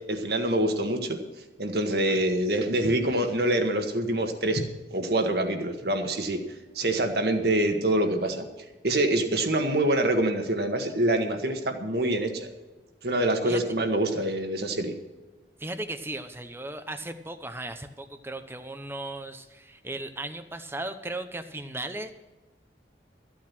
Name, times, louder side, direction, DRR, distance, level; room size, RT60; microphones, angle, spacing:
voice 1, 0.1-1.2 1.6-4.6 4.9-6.4 6.7-8.4 8.8-12.5 13.0-14.9, right 1 dB, 60° right, 5 dB, 1.7 m, -25 dB
voice 2, 2.1-2.4 13.4-13.8 15.6-22.1, right 2 dB, 15° right, 9 dB, 0.9 m, -37 dB
14.5 x 8.7 x 6.1 m, 1.2 s
head